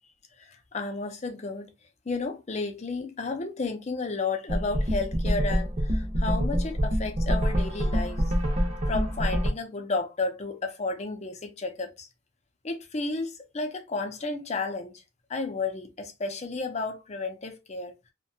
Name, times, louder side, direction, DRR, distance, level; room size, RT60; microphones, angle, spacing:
voice 1, 0.4-1.7 2.1-8.2 8.9-12.1 12.6-14.9 15.3-17.9, left 3 dB, 35° left, 0.5 m, -32 dB
sound 1, 4.5-9.5, equal, 40° right, 0.6 m, -26 dB
2.7 x 2.2 x 2.6 m
head